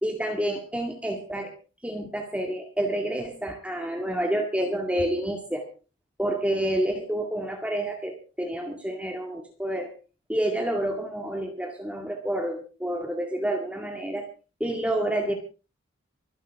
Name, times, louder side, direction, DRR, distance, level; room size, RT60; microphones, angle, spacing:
voice 1, 0.0-1.5 1.8-5.6 6.2-9.9 10.3-14.3 14.6-15.3, right 1 dB, 5° right, 2 dB, 2.0 m, -29 dB
25.0 x 11.0 x 3.6 m, 0.34 s
head